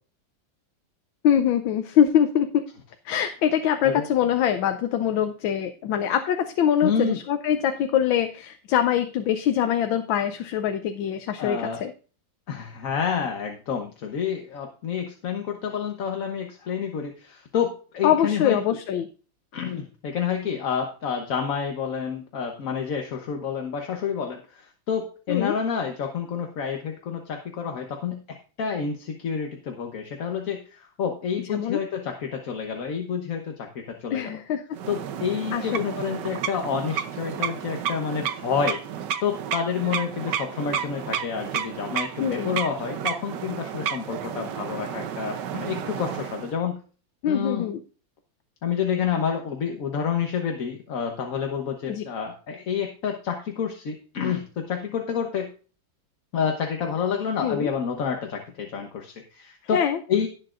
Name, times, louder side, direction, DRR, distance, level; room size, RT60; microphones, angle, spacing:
voice 1, 1.2-2.6 3.0-11.9 18.0-19.1 25.3-25.5 31.5-31.8 34.1-34.6 35.5-35.8 42.2-42.6 47.2-47.8 51.9-52.0 57.4-57.7 59.7-60.0, left 9 dB, 90° left, 7 dB, 1.5 m, -23 dB
voice 2, 6.8-7.2 11.4-11.8 12.5-18.6 19.5-34.3 34.9-38.8 39.2-46.8 47.3-47.7 48.6-55.5 56.3-59.8 60.1-60.3, left 7 dB, 50° left, 3 dB, 1.3 m, -29 dB
sound 1, 34.7-46.6, right 8 dB, 70° right, 1.4 m, -32 dB
18.0 x 6.7 x 2.5 m, 0.38 s
omnidirectional pair, 2.1 m